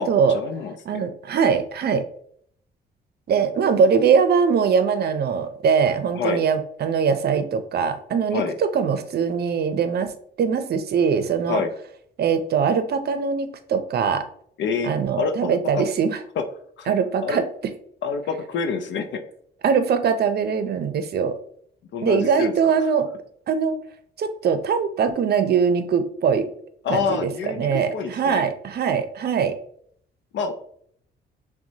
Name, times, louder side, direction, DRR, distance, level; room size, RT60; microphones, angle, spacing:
voice 1, 0.0-1.0 6.1-6.4 8.3-8.5 11.5-11.7 14.6-15.8 16.8-16.9 17.2-17.4 18.0-19.2 21.9-22.5 26.8-28.5 30.3-30.5, left 5 dB, 65° left, 6 dB, 0.5 m, -27 dB
voice 2, 0.9-2.0 3.3-11.6 12.2-14.2 14.8-16.2 16.9-17.5 19.6-21.4 22.0-23.1 23.5-23.8 24.2-26.5 26.9-29.6, right 6 dB, 55° right, 10 dB, 0.6 m, -22 dB
5.8 x 2.2 x 2.7 m, 0.64 s
cardioid pair, 90°, 20 cm